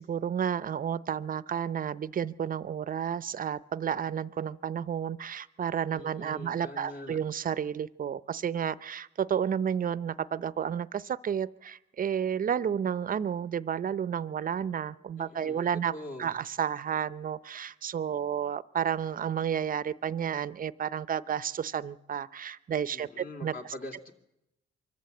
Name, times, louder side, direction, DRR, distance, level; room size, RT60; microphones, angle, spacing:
voice 1, 0.0-15.9 16.2-23.5, right 8 dB, 45° right, 18 dB, 0.7 m, -31 dB
voice 2, 5.9-7.2 15.2-16.3 22.9-24.1, left 1 dB, 45° left, 4 dB, 2.9 m, -43 dB
24.5 x 14.0 x 7.9 m, 0.87 s
cardioid pair, 90°, 20 cm